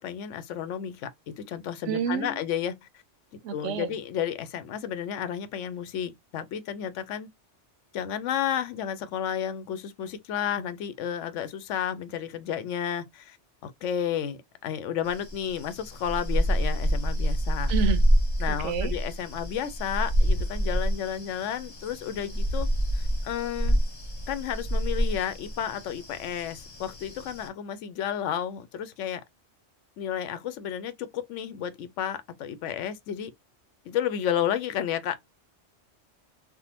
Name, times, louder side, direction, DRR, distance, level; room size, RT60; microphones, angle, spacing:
voice 1, 0.0-3.0 3.5-7.3 7.9-13.4 13.6-17.7 18.4-22.7 22.9-23.8 24.3-29.2 30.0-33.3 33.8-35.2, left 9 dB, 90° left, 0.9 m, -32 dB
voice 2, 1.9-2.4 3.4-4.0 17.7-18.0 18.5-18.9, right 7 dB, 85° right, 0.9 m, -29 dB
sound 1, 15.0-27.5, equal, 35° left, 0.9 m, -27 dB
3.5 x 2.1 x 2.8 m
omnidirectional pair, 1.2 m